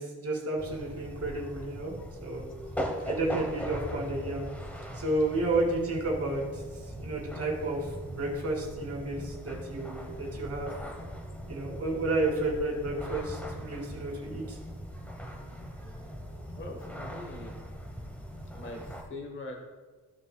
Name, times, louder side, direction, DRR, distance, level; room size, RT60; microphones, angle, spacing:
voice 1, 0.0-2.5 3.1-4.5 4.9-10.7 11.5-14.6, right 2 dB, 45° right, -2 dB, 2.5 m, -31 dB
sound 1, 0.6-19.0, equal, 5° left, 1.0 m, -40 dB
voice 2, 16.6-17.6 18.5-19.6, left 2 dB, 35° left, 2 dB, 1.1 m, -42 dB
13.5 x 6.6 x 2.2 m, 1.3 s
wide cardioid pair, 155°, 33 cm